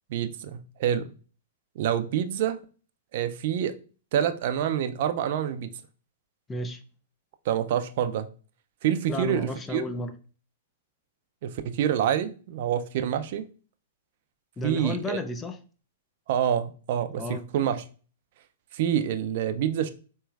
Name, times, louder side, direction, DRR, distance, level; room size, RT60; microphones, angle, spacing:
voice 1, 0.1-1.1 1.8-2.6 3.1-3.7 4.1-5.7 7.5-8.3 8.8-9.8 11.4-13.4 14.6-15.2 16.3-17.8 18.7-19.9, right 9 dB, 55° right, 0.4 m, -27 dB
voice 2, 6.5-6.8 9.1-10.1 14.6-15.6 17.1-17.4, left 2 dB, 15° left, 0.5 m, -33 dB
4.4 x 3.0 x 2.3 m
hypercardioid pair, 115°, 0 cm